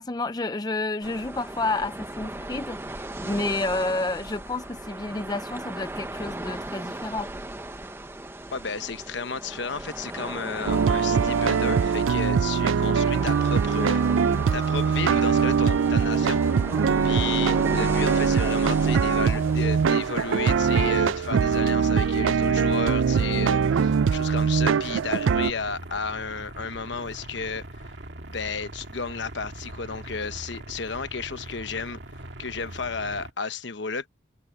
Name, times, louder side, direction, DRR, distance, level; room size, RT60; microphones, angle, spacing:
voice 1, 0.0-7.3, left 2 dB, 20° left, 0.5 m, -30 dB
sound 1, 1.0-20.9, right 1 dB, 10° right, 0.8 m, -37 dB
voice 2, 8.5-16.4 17.0-27.9 28.3-32.0 32.4-34.1, left 5 dB, 70° left, 1.0 m, -33 dB
sound 2, 10.7-25.5, right 6 dB, 90° right, 0.4 m, -22 dB
sound 3, 14.7-33.3, right 1 dB, 65° right, 1.9 m, -41 dB
head